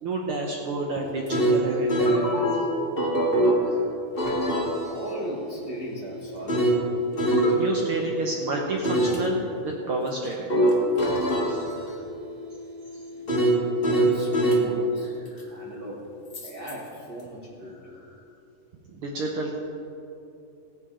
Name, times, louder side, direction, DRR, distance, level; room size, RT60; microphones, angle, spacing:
voice 1, 0.0-2.5 3.6-3.8 4.5-4.6 7.5-10.5 11.1-11.7 15.3-15.8 18.9-19.6, right 2 dB, 80° right, 0 dB, 1.2 m, -30 dB
sound 1, 1.0-3.6 4.2-8.3 8.8-9.2 10.5-14.7 16.3-16.7, right 1 dB, 40° left, 0.8 m, -24 dB
voice 2, 4.9-6.7 13.9-15.1 15.5-16.1 16.4-17.9, right 1 dB, 50° right, -5 dB, 1.4 m, -37 dB
17.0 x 9.9 x 3.7 m, 2.8 s
omnidirectional pair, 3.7 m